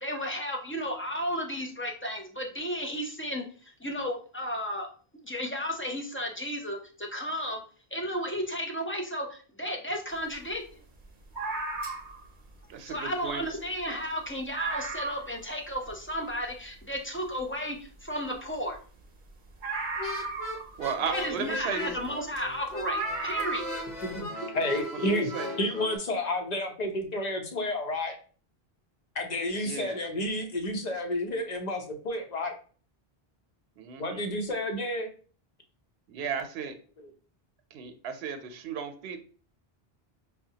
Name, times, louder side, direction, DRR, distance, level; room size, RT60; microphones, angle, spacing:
voice 1, 0.0-4.9 5.2-7.6 7.9-10.6 12.8-18.8 21.1-23.8, equal, 20° left, 1 dB, 0.4 m, -33 dB
sound 1, 11.3-12.3 13.3-13.4 13.8-13.9 14.2-14.3 14.5-15.4 15.9-16.0 19.6-20.9 22.0-22.1 22.8-23.8 24.1-24.2, right 3 dB, 55° right, 0.8 m, -34 dB
voice 2, 12.7-13.4 20.8-22.0 24.9-25.5 29.6-30.0 33.8-34.2 36.1-36.8 37.7-39.2, right 6 dB, 90° right, 7 dB, 0.8 m, -35 dB
sound 2, 20.0-26.0, left 1 dB, 70° left, 1.0 m, -38 dB
voice 3, 24.5-25.3 25.6-28.1 29.1-32.5 34.0-35.1 37.0-37.1, left 1 dB, 45° left, 3 dB, 0.8 m, -30 dB
5.6 x 2.2 x 2.7 m, 0.41 s
omnidirectional pair, 1.0 m